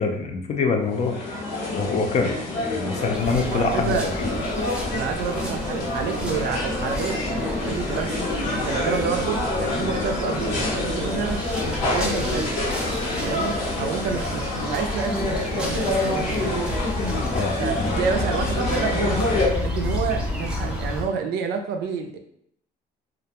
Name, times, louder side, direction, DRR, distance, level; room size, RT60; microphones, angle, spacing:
voice 1, 0.0-1.4 1.7-2.3 2.6-4.0 17.3-18.0, left 4 dB, 45° left, 4 dB, 0.4 m, -25 dB
sound 1, 0.8-19.5, left 2 dB, 85° left, 0.9 m, -27 dB
sound 2, 3.1-21.0, left 1 dB, 5° right, 0.6 m, -31 dB
voice 2, 3.5-4.1 4.9-11.4 11.9-12.6 13.2-16.6 17.6-22.2, right 6 dB, 75° right, 5 dB, 0.4 m, -29 dB
2.4 x 2.1 x 2.8 m, 0.70 s
cardioid pair, 110°, 17 cm